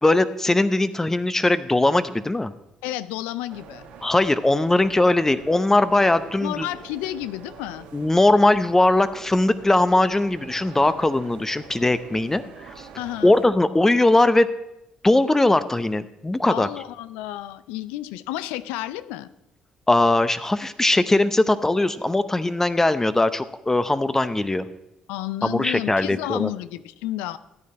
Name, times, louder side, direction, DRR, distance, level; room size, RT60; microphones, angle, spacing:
voice 1, 0.0-2.5 4.0-6.7 7.9-12.9 13.2-14.5 15.0-16.7 19.9-24.7 25.4-26.5, left 2 dB, 15° left, 13 dB, 0.8 m, -20 dB
voice 2, 2.8-3.8 6.4-7.9 13.0-13.3 16.5-19.3 25.1-27.4, left 14 dB, 85° left, 16 dB, 0.5 m, -31 dB
sound 1, 3.5-13.5, right 5 dB, 80° right, 1.5 m, -45 dB
13.5 x 9.5 x 4.3 m, 0.87 s
supercardioid pair, 60°, 3 cm